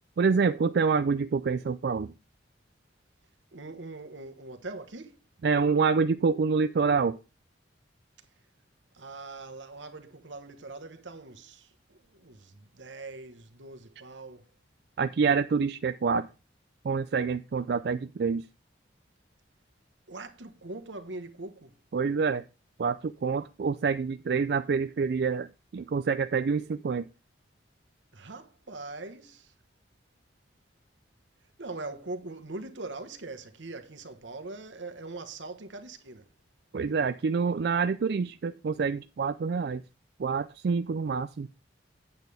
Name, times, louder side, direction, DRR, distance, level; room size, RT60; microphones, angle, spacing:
voice 1, 0.2-2.1 5.4-7.2 15.0-16.3 16.8-18.4 21.9-22.4 22.8-27.1 36.7-39.8 40.2-41.5, right 5 dB, 60° right, 0.3 m, -27 dB
voice 2, 3.5-5.2 8.9-14.5 20.1-21.8 28.1-29.5 31.6-36.3, right 2 dB, 85° right, 1.3 m, -42 dB
9.0 x 8.1 x 3.4 m
head